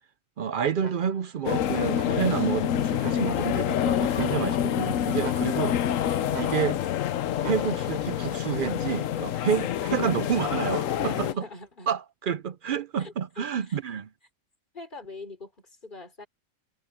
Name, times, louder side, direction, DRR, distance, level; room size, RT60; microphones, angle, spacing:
voice 1, 0.4-5.8 6.4-6.8 7.4-11.4 11.9-14.1, right 8 dB, 60° right, 0.5 m, -29 dB
sound 1, 0.8-1.4 1.9-2.5 3.0-3.7 4.1-4.8 5.2-5.9 6.3-7.0 7.4-8.1 8.6-9.2 10.7-11.3, right 4 dB, 35° right, 1.3 m, -43 dB
sound 2, 1.4-11.3, left 10 dB, 80° left, 1.1 m, -27 dB
voice 2, 10.7-11.9 13.0-13.8 14.7-16.3, left 3 dB, 40° left, 3.4 m, -43 dB
omnidirectional pair, 1.3 m